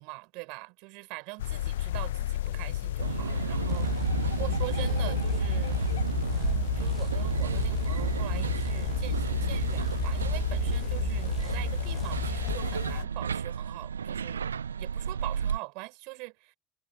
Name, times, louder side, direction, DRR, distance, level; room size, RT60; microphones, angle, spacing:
voice 1, 0.0-5.8 6.3-16.5, right 31 dB, 65° right, 6.8 m, -43 dB
sound 1, 1.4-13.0, left 13 dB, 75° left, 1.0 m, -33 dB
sound 2, 3.0-15.6, right 7 dB, 85° right, 0.3 m, -32 dB
sound 3, 3.7-12.6, left 3 dB, 20° left, 1.2 m, -35 dB
figure-of-eight pair, 65°, 0 cm